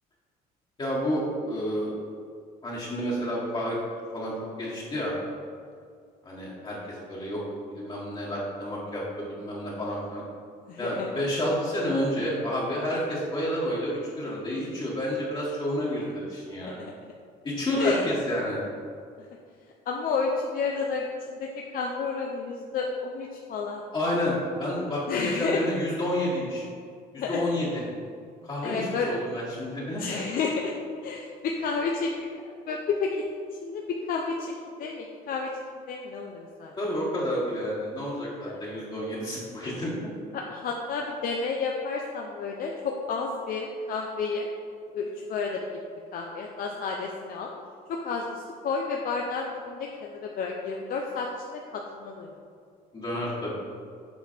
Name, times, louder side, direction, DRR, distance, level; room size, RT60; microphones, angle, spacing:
voice 1, 0.8-1.9 2.6-3.8 4.1-4.3 4.6-5.1 6.2-7.4 7.7-10.2 10.8-16.8 17.4-18.6 23.9-26.6 27.1-27.8 28.4-30.2 36.8-39.9 52.9-53.5, equal, 30° left, -7 dB, 1.7 m, -30 dB
voice 2, 10.7-11.1 16.8-16.9 17.8-18.0 19.9-23.8 25.1-25.6 27.2-27.4 28.6-29.1 30.0-30.7 31.0-32.1 32.7-33.2 33.6-34.5 34.8-35.5 35.9-36.7 38.5-38.6 40.3-44.5 44.9-45.7 46.1-47.5 47.9-52.3, left 4 dB, 60° left, 0 dB, 0.7 m, -31 dB
7.8 x 5.1 x 4.5 m, 2.2 s
cardioid pair, 110°, 17 cm